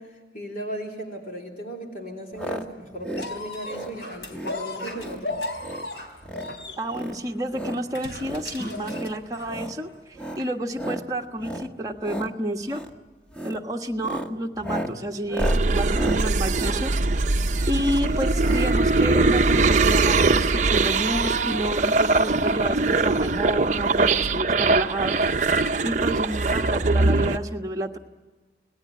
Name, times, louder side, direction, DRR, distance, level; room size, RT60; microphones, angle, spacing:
voice 1, 0.0-5.4 26.0-26.1, equal, 50° left, 0 dB, 3.4 m, -37 dB
sound 1, 2.3-2.6 2.9-3.3 3.6-3.9 4.3-4.6 4.9-5.2 5.5-5.9 6.2-6.5 6.9-7.8 8.2-8.4 8.8-9.1 9.5-9.8 10.1-10.4 10.7-11.0 11.4-11.7 12.0-12.3 12.7-12.9 13.3-13.6 13.9-17.6 18.4-18.7 19.0-19.1 19.2-19.3, right 1 dB, 5° left, 1.3 m, -34 dB
sound 2, 3.2-9.6 10.4-10.5, left 2 dB, 80° left, 3.9 m, -35 dB
voice 2, 6.8-9.9 10.4-12.8 13.4-16.9 17.7-25.2 25.8-28.0, right 1 dB, 20° right, 2 dB, 1.4 m, -30 dB
sound 3, 15.4-27.4, right 3 dB, 40° right, 0.7 m, -21 dB
28.0 x 19.5 x 8.5 m, 1.3 s
head